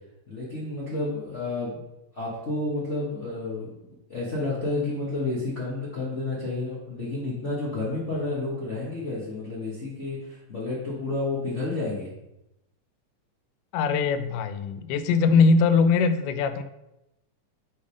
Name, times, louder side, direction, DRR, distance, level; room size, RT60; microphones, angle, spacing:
voice 1, 0.3-1.8 2.1-3.7 4.1-12.1, left 2 dB, 65° left, -7 dB, 0.7 m, -30 dB
voice 2, 13.7-16.6, left 4 dB, 85° left, 11 dB, 2.1 m, -21 dB
7.3 x 3.5 x 5.0 m, 0.89 s
omnidirectional pair, 3.7 m